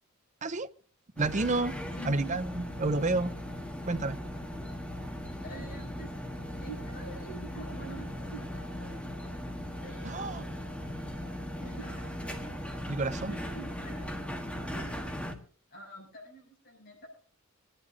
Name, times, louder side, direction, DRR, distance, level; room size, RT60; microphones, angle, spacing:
sound 1, 1.2-15.3, equal, 5° left, 1.5 m, -38 dB
voice 1, 1.2-1.8 2.0-3.3 3.8-4.2 10.0-10.4 12.9-13.4, right 3 dB, 35° right, 0.6 m, -30 dB
voice 2, 1.9-2.3 5.4-6.1 6.6-8.9 9.8-10.6 11.6-12.3 13.3-14.2 14.4-15.3 15.7-17.1, right 3 dB, 50° left, 7.0 m, -47 dB
25.5 x 11.0 x 2.8 m
head